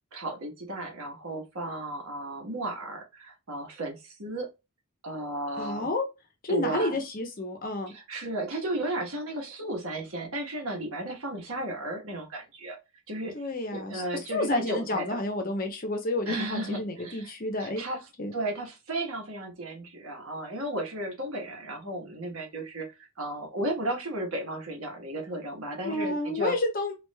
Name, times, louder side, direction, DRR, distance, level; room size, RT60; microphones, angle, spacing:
voice 1, 0.1-4.5 5.0-5.9 6.5-6.9 7.9-12.8 13.1-13.4 13.7-15.2 16.3-18.0 18.3-26.5, right 1 dB, 70° right, 1.2 m, -34 dB
voice 2, 5.6-6.0 6.4-7.9 13.3-14.0 14.3-17.8 18.2-18.3 25.8-26.9, left 2 dB, 40° left, 0.8 m, -30 dB
4.7 x 2.5 x 2.2 m
head